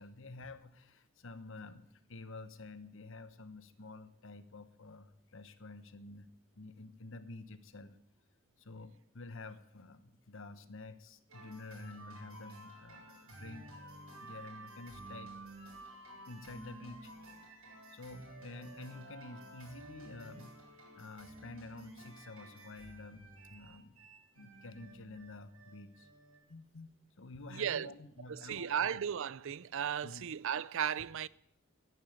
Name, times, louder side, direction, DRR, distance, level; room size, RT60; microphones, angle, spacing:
voice 1, 0.0-6.3 6.5-8.0 8.6-13.7 14.2-15.3 16.3-17.1 17.9-23.9 24.4-26.1 26.5-26.9 27.2-29.0 30.0-30.2, left 3 dB, 65° left, 1.2 m, -50 dB
sound 1, 11.3-26.4, right 2 dB, 85° right, 7.9 m, -52 dB
voice 2, 27.5-27.9 28.3-31.3, right 8 dB, 65° right, 0.5 m, -35 dB
12.0 x 11.0 x 9.6 m
head